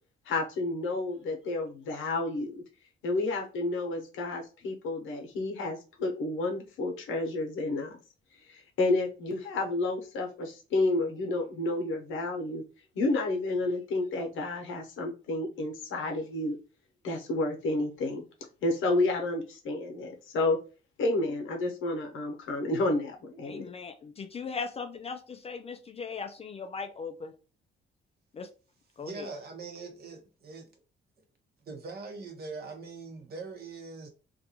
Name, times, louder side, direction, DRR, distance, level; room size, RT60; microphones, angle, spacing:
voice 1, 0.3-2.6 3.0-8.0 8.5-12.6 12.9-16.6 17.0-18.2 18.6-20.6 21.0-23.7, left 2 dB, 80° left, 0.8 m, -30 dB
voice 2, 23.4-27.3 28.3-28.5 29.0-29.3, left 5 dB, 30° left, 0.3 m, -38 dB
voice 3, 29.0-30.8 31.6-34.1, right 4 dB, 55° right, 0.8 m, -42 dB
2.5 x 2.3 x 2.8 m
cardioid pair, 90°, 20 cm